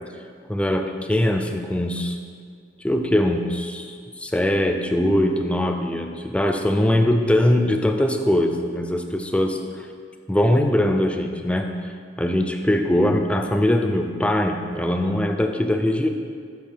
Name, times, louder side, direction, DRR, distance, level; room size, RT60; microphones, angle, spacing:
voice 1, 0.5-2.2 2.8-9.9 10.3-11.7 12.2-16.1, left 1 dB, 5° left, 4 dB, 0.4 m, -21 dB
7.4 x 6.2 x 3.5 m, 2.1 s
head